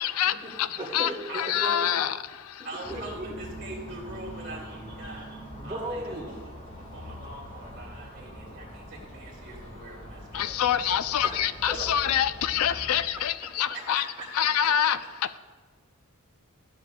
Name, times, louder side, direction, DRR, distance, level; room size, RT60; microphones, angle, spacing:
voice 1, 0.0-2.7 10.3-14.1 14.3-15.4, left 10 dB, 70° left, 14 dB, 0.3 m, -26 dB
voice 2, 0.8-2.0 2.9-3.3 5.2-6.3 11.2-11.4, right 1 dB, 25° right, -4 dB, 1.3 m, -37 dB
voice 3, 1.3-1.8 2.6-5.3 5.6-6.1 6.7-11.3 11.7-11.9 13.7-13.8 14.2-14.3, right 2 dB, 50° right, -7 dB, 1.9 m, -42 dB
sound 1, 2.8-13.1, equal, 35° left, 1.6 m, -43 dB
12.5 x 7.4 x 2.2 m, 1.4 s
head